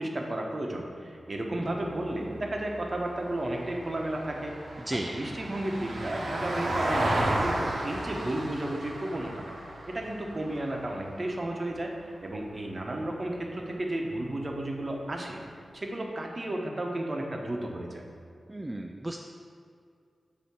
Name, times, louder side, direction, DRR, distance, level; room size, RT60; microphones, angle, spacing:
voice 1, 0.0-9.6 9.9-11.9 12.2-15.4 15.7-18.0, right 1 dB, 35° right, 1 dB, 0.8 m, -33 dB
Vehicle, 1.6-12.1 14.4-14.5, right 1 dB, 90° right, 1.2 m, -34 dB
voice 2, 4.9-5.2 18.5-19.2, right 1 dB, 15° right, 2 dB, 0.3 m, -34 dB
8.4 x 2.8 x 5.9 m, 2.3 s
wide cardioid pair, 125°, 0 cm